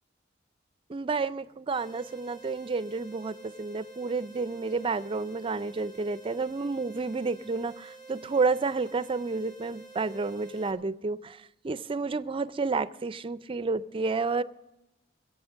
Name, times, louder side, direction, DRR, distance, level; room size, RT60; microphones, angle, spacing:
voice 1, 0.9-14.4, right 4 dB, 30° right, 16 dB, 0.4 m, -30 dB
sound 1, 1.7-10.7, right 3 dB, 25° left, 2.3 m, -49 dB
21.0 x 8.5 x 6.3 m, 0.96 s
head